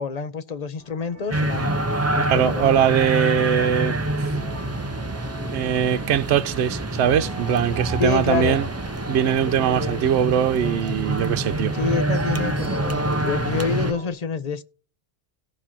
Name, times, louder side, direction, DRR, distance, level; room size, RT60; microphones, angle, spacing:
voice 1, 0.0-1.8 2.1-2.9 8.0-8.6 11.7-14.6, left 5 dB, 40° left, 0.7 m, -27 dB
sound 1, 0.8-14.1, left 1 dB, 75° left, 3.9 m, -43 dB
sound 2, 1.3-13.9, right 1 dB, 20° right, 0.5 m, -26 dB
voice 2, 2.2-4.3 5.5-8.7 9.1-11.7, right 9 dB, 75° right, 0.9 m, -21 dB
17.5 x 6.0 x 2.8 m
omnidirectional pair, 1.2 m